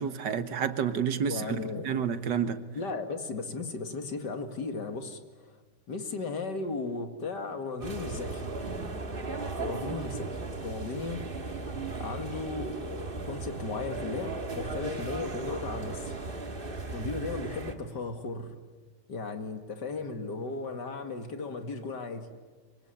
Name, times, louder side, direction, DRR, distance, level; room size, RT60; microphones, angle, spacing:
voice 1, 0.0-2.6, right 7 dB, 85° right, 11 dB, 2.0 m, -30 dB
voice 2, 1.3-1.9 2.7-5.2 5.5-5.6 5.9-8.4 9.6-10.3 10.6-11.2 11.9-16.1 16.9-18.5 19.1-22.3, left 3 dB, 80° left, 7 dB, 2.8 m, -36 dB
sound 1, 7.8-17.7, right 3 dB, 30° right, 2.1 m, -36 dB
25.5 x 24.5 x 9.3 m, 1.4 s
omnidirectional pair, 1.8 m